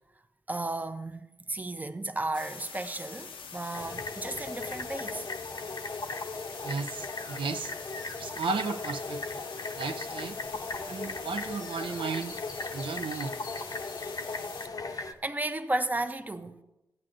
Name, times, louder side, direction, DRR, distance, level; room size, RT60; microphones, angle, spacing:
voice 1, 0.5-5.2 14.8-16.6, right 2 dB, 20° right, 0.6 m, -34 dB
sound 1, 2.3-14.7, left 5 dB, 80° left, 0.7 m, -45 dB
sound 2, 3.7-15.1, left 3 dB, 45° left, 0.7 m, -37 dB
voice 2, 6.6-7.7 8.2-9.4 9.7-10.4 10.9-12.4 12.7-13.4, right 5 dB, 75° right, 0.5 m, -34 dB
14.0 x 8.7 x 2.6 m
cardioid pair, 60°, 9 cm